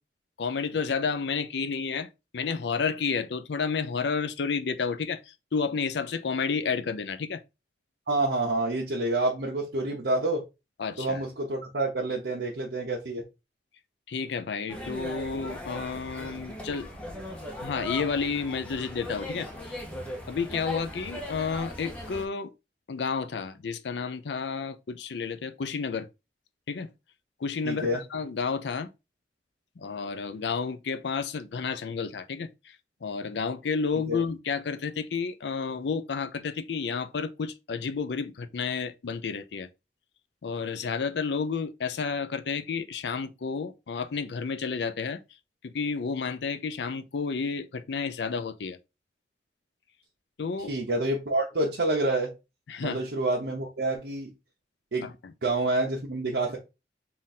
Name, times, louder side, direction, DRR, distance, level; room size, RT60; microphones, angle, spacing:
voice 1, 0.4-2.1 2.3-7.4 10.8-11.2 14.1-16.9 17.6-19.8 20.3-22.5 22.9-26.1 26.7-26.9 27.4-28.9 29.8-32.7 33.0-39.7 40.4-45.2 45.6-48.8 50.4-50.7 52.7-53.0 55.0-55.3, left 5 dB, 80° left, 0.5 m, -31 dB
voice 2, 8.1-10.4 11.0-13.2 27.6-28.0 34.1-34.2 50.7-52.3 52.8-54.3 54.9-55.1 55.4-56.6, right 2 dB, 80° right, 0.8 m, -28 dB
sound 1, 14.7-22.3, left 1 dB, 5° left, 0.8 m, -38 dB
3.8 x 2.5 x 4.1 m
head